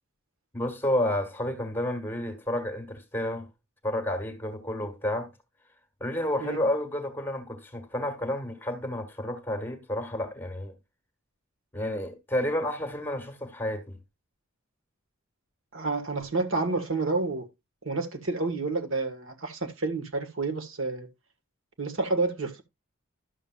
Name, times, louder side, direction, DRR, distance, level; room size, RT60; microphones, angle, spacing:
voice 1, 0.5-3.5 3.8-5.3 6.0-10.7 11.7-14.0, left 1 dB, 10° left, 1.5 m, -30 dB
voice 2, 15.7-17.5 17.8-21.1 21.8-22.6, right 3 dB, 65° right, 1.6 m, -29 dB
12.0 x 7.1 x 2.4 m
head